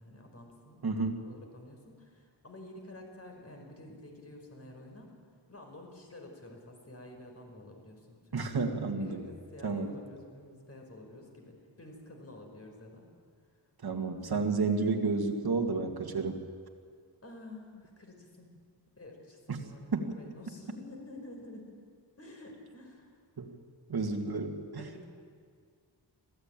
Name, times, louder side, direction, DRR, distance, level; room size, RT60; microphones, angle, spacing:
voice 1, 0.0-0.8 1.2-5.1 5.5-8.5 9.0-13.1 17.2-18.6 18.9-21.8 22.2-23.2 24.1-24.3 24.8-25.1, left 1 dB, 35° left, 2 dB, 4.9 m, -49 dB
voice 2, 0.8-1.2 8.3-9.2 9.6-9.9 13.8-16.4 19.9-20.2 23.4-23.6 23.9-24.6, right 4 dB, 60° right, 4 dB, 2.3 m, -31 dB
25.5 x 15.5 x 9.0 m, 2.1 s
wide cardioid pair, 120°, 42 cm